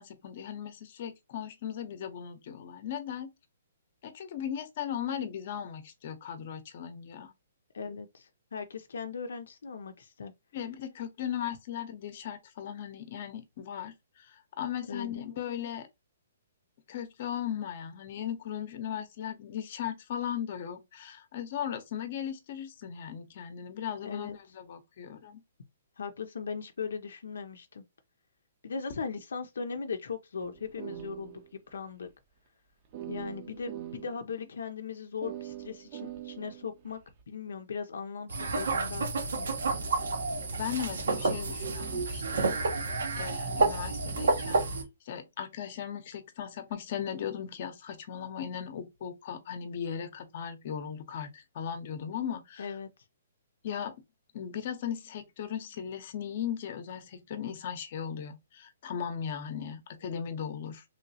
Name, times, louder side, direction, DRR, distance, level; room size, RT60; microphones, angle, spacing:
voice 1, 0.0-3.3 4.0-7.3 10.5-13.9 14.2-15.9 16.9-25.4 40.6-42.6 43.1-44.6 45.1-52.7 53.6-53.9 54.3-60.8, left 9 dB, 45° left, 0.7 m, -37 dB
voice 2, 7.7-10.3 14.9-15.3 24.0-24.4 26.0-27.8 28.6-32.1 33.1-37.0 37.3-39.5 52.6-52.9, left 5 dB, 80° left, 0.5 m, -38 dB
sound 1, 30.4-31.7 32.0-32.1 32.9-34.2 35.2-37.2, right 12 dB, 35° right, 0.6 m, -43 dB
sound 2, 38.3-44.8, right 3 dB, 80° right, 1.0 m, -30 dB
3.1 x 2.9 x 2.7 m
hypercardioid pair, 160°, 0 cm